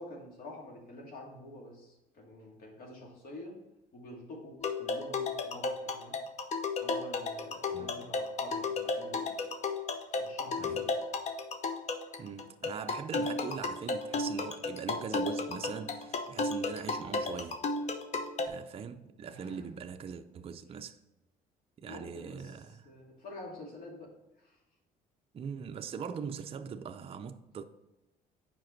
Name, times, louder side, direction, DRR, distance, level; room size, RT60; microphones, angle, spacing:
voice 1, 0.0-3.5 3.9-6.2 6.8-9.3 10.2-10.9 19.3-19.6 21.8-24.1 24.4-24.6, left 1 dB, 60° left, 2.3 m, -48 dB
sound 1, 4.6-18.5, left 3 dB, 45° left, 0.8 m, -34 dB
voice 2, 7.7-8.1 10.6-10.8 12.2-17.6 18.4-21.0 21.8-22.9 25.3-27.6, right 6 dB, 35° right, 0.5 m, -41 dB
7.4 x 5.1 x 4.5 m
cardioid pair, 110°, 17 cm